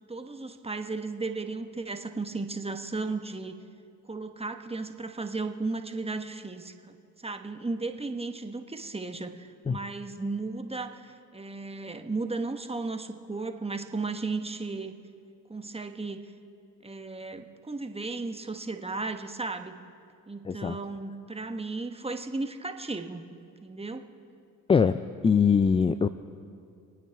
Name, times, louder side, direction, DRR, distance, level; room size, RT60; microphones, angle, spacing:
voice 1, 0.1-3.6 4.1-7.0 7.2-15.0 15.5-16.2 16.8-19.7 20.3-23.3 23.6-24.1, right 3 dB, 15° right, 7 dB, 1.1 m, -35 dB
voice 2, 20.4-20.8 24.7-26.1, left 6 dB, 15° left, 13 dB, 0.3 m, -23 dB
25.5 x 9.4 x 3.5 m, 2.4 s
hypercardioid pair, 50°, 43 cm